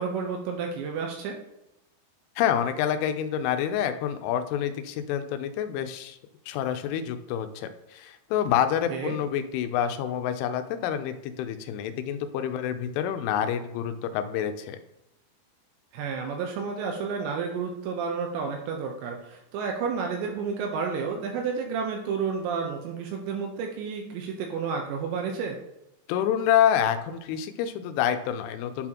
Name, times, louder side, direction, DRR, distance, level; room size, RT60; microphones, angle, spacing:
voice 1, 0.0-1.4 8.9-9.2 15.9-25.6, right 5 dB, 80° right, 2 dB, 2.8 m, -31 dB
voice 2, 2.4-6.2 6.5-14.8 26.1-28.9, left 9 dB, 85° left, 9 dB, 3.1 m, -27 dB
11.0 x 4.1 x 2.9 m, 0.87 s
omnidirectional pair, 5.6 m